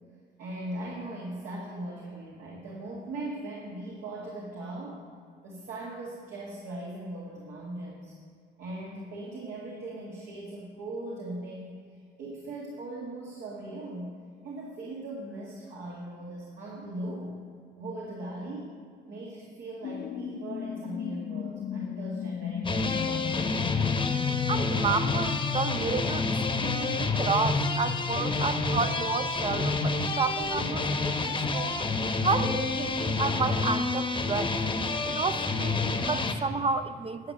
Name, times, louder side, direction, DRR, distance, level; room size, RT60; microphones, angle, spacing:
voice 1, 0.4-5.0 5.4-8.1 8.6-11.7 12.2-14.2 14.4-17.4 17.8-18.7 19.1-23.5, right 1 dB, 85° right, -4 dB, 1.9 m, -39 dB
sound 1, 19.8-30.1, left 8 dB, 45° left, 0.4 m, -35 dB
sound 2, 22.6-36.3, left 3 dB, 25° left, 0.9 m, -29 dB
voice 2, 24.5-26.3 26.6-31.8 32.2-34.6 35.0-37.3, right 4 dB, 30° right, 11 dB, 0.5 m, -31 dB
11.5 x 7.0 x 5.7 m, 2.1 s
cardioid pair, 90°, 20 cm